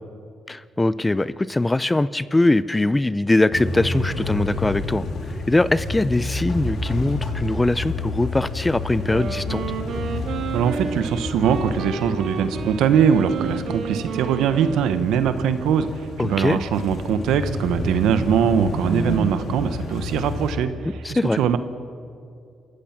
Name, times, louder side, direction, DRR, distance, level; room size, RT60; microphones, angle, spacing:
voice 1, 0.5-5.1 5.5-9.6 16.2-16.6 21.0-21.4, left 2 dB, 15° left, 17 dB, 0.5 m, -21 dB
sound 1, 3.5-20.5, left 2 dB, 65° left, 3.7 m, -30 dB
Wind instrument woodwind instrument, 9.0-15.5, right 5 dB, 70° right, 1.8 m, -32 dB
voice 2, 10.5-15.9 16.2-21.6, right 8 dB, 85° right, 11 dB, 1.1 m, -22 dB
28.0 x 15.0 x 6.0 m, 2.5 s
cardioid pair, 90°, 0 cm